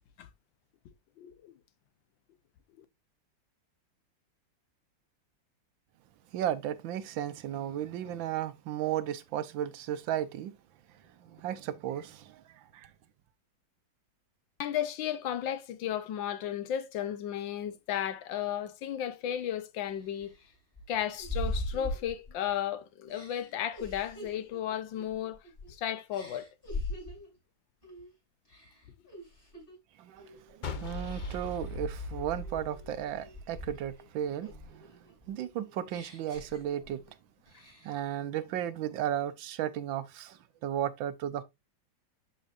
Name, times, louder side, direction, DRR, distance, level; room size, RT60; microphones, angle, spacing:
voice 1, 1.2-1.5 2.8-2.9 14.6-20.3 20.9-25.4 25.7-26.5, left 10 dB, 85° left, 1.6 m, -34 dB
voice 2, 6.3-10.5 11.2-12.9 30.0-37.0 37.8-41.4, right 11 dB, 90° right, 1.5 m, -35 dB
sound 1, 19.2-19.3 19.9-22.6 23.1-25.7 26.1-27.4 27.8-28.1 28.5-29.8 30.2-30.5 31.0-31.6 32.1-34.0 34.4-37.1 37.5-38.1, left 1 dB, 25° left, 6.1 m, -41 dB
sound 2, 30.6-33.9, left 3 dB, 55° left, 0.5 m, -39 dB
11.5 x 4.5 x 2.5 m
omnidirectional pair, 2.0 m